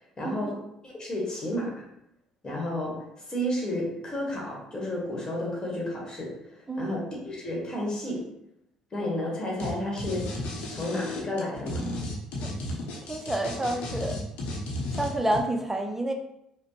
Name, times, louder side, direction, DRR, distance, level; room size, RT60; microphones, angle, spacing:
voice 1, 0.2-0.6 0.8-1.9 2.4-8.3 8.9-10.4 10.7-11.8, left 1 dB, 25° left, -3 dB, 1.4 m, -32 dB
sound 1, 9.6-9.7 10.0-15.4, left 1 dB, 55° left, 0.8 m, -33 dB
voice 2, 13.1-14.2 14.9-16.1, right 1 dB, 10° right, 3 dB, 0.5 m, -29 dB
4.8 x 2.1 x 3.1 m, 0.80 s
figure-of-eight pair, 50°, 3 cm